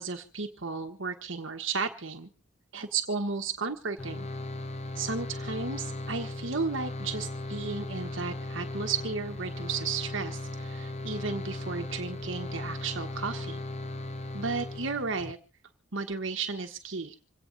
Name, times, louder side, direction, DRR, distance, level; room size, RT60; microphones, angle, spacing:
voice 1, 0.0-2.3 2.7-4.3 5.0-13.6 14.3-15.4 15.9-17.1, right 4 dB, 65° right, 5 dB, 1.4 m, -34 dB
sound 1, 4.0-15.3, left 1 dB, 35° left, 0.8 m, -37 dB
27.0 x 9.0 x 4.0 m, 0.35 s
head